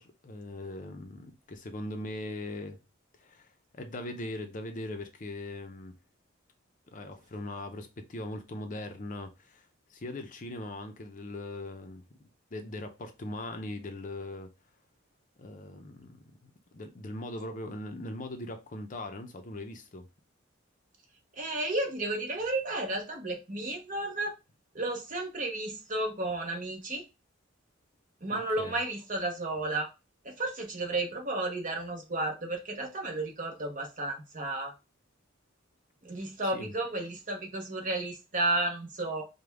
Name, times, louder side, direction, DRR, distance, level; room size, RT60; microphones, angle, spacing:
voice 1, 0.0-2.8 3.2-5.9 6.9-14.5 15.4-20.1 28.3-28.8 36.4-36.7, left 1 dB, 40° left, 0.6 m, -40 dB
voice 2, 21.3-24.3 24.7-27.0 28.2-29.9 30.2-34.7 36.0-39.3, right 2 dB, 40° right, 1.0 m, -32 dB
5.0 x 2.2 x 3.4 m
head